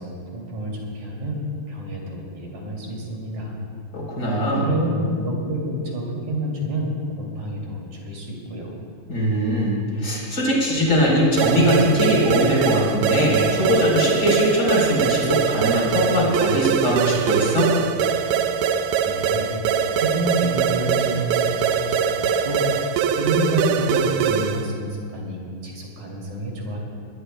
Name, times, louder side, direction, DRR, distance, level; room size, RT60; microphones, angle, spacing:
voice 1, 0.0-1.4 1.7-3.6 4.5-8.8 19.1-22.6 23.1-26.8, right 1 dB, 45° right, -2 dB, 3.6 m, -28 dB
voice 2, 3.9-4.7 9.1-17.7, equal, 20° left, -4 dB, 3.9 m, -21 dB
sound 1, 11.4-24.7, right 7 dB, 85° right, 2.6 m, -22 dB
21.5 x 20.5 x 2.2 m, 2.2 s
omnidirectional pair, 5.1 m